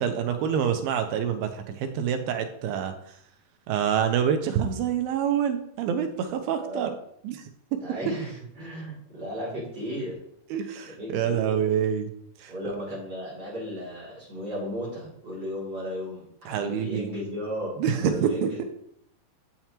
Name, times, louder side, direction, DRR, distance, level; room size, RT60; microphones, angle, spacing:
voice 1, 0.0-2.9 3.7-7.0 7.2-7.4 10.5-12.1 12.4-12.5 16.5-17.1 17.8-18.6, right 8 dB, 85° right, 7 dB, 2.5 m, -26 dB
voice 2, 6.6-6.9 7.8-10.2 10.9-11.6 12.5-18.6, equal, 30° right, -7 dB, 2.7 m, -35 dB
7.4 x 6.7 x 2.9 m, 0.69 s
omnidirectional pair, 4.3 m